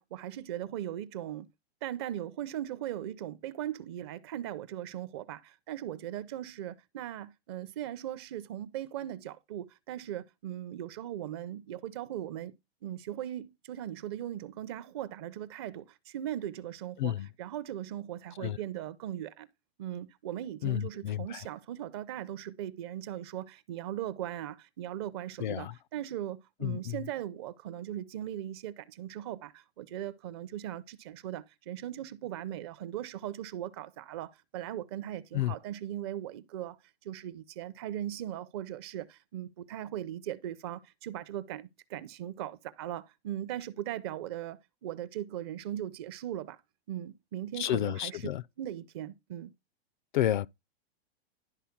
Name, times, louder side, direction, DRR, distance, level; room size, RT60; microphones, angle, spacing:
voice 1, 0.0-1.5 1.8-12.5 12.8-17.1 17.4-19.5 19.8-36.8 37.0-46.6 46.9-48.2 48.6-49.5, right 11 dB, 25° right, 0.5 m, -39 dB
voice 2, 17.0-17.3 18.4-18.6 20.6-21.5 25.4-25.7 26.6-27.0 35.3-35.5 47.6-48.4 50.1-50.5, left 12 dB, 50° left, 0.4 m, -31 dB
11.5 x 4.2 x 5.8 m
supercardioid pair, 165°, 32 cm